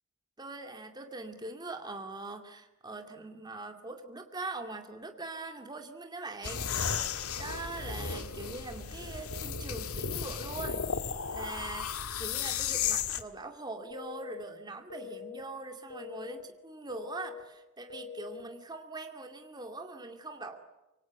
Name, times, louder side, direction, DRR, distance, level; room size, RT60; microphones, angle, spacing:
voice 1, 0.4-11.9 12.2-20.7, right 2 dB, 20° right, 5 dB, 2.3 m, -42 dB
sound 1, 6.4-13.2, left 7 dB, 85° left, 1.7 m, -34 dB
sound 2, 13.9-14.4 14.9-15.4 15.9-16.4 16.9-17.4 17.9-18.4, left 7 dB, 65° left, 5.1 m, -43 dB
26.5 x 24.5 x 8.2 m, 1.0 s
head